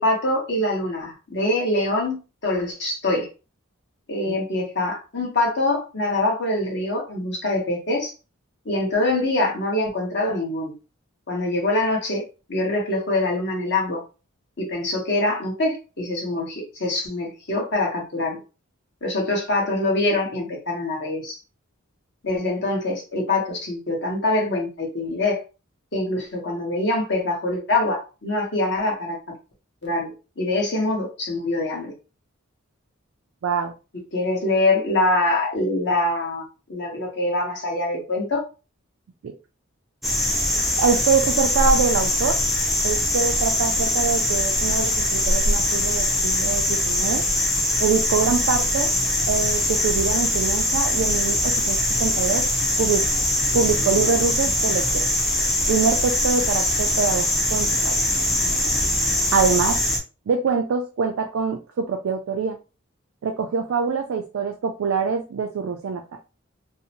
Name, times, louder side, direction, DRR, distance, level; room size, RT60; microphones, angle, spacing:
voice 1, 0.0-2.2 2.4-3.3 4.1-8.1 8.6-10.7 11.3-14.0 14.6-18.4 19.0-21.4 22.2-25.4 25.9-29.2 29.8-31.9 34.1-36.4 36.7-38.4, left 2 dB, 50° left, -1 dB, 1.0 m, -24 dB
voice 2, 33.4-33.7 39.2-39.3 40.8-42.4 42.8-47.2 47.8-48.9 49.3-52.5 52.8-53.0 53.5-55.0 55.7-58.0 59.3-59.8 60.3-62.6 63.2-66.0, right 5 dB, 70° right, 3 dB, 0.3 m, -24 dB
sound 1, 40.0-60.0, left 1 dB, ahead, 0.4 m, -22 dB
2.6 x 2.0 x 2.8 m, 0.32 s
head